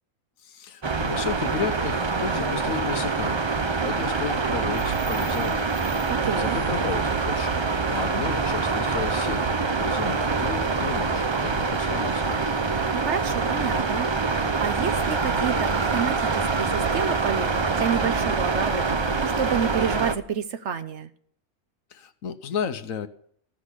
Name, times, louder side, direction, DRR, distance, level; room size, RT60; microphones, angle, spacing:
voice 1, 0.4-5.7 6.4-7.6 7.9-12.5 21.9-23.1, left 7 dB, 70° left, 11 dB, 1.2 m, -33 dB
sound 1, 0.8-20.2, right 4 dB, 40° right, 0.4 m, -25 dB
voice 2, 6.1-6.6 12.9-21.1, right 7 dB, 60° right, 11 dB, 1.0 m, -29 dB
15.0 x 6.1 x 9.8 m, 0.63 s
omnidirectional pair, 1.5 m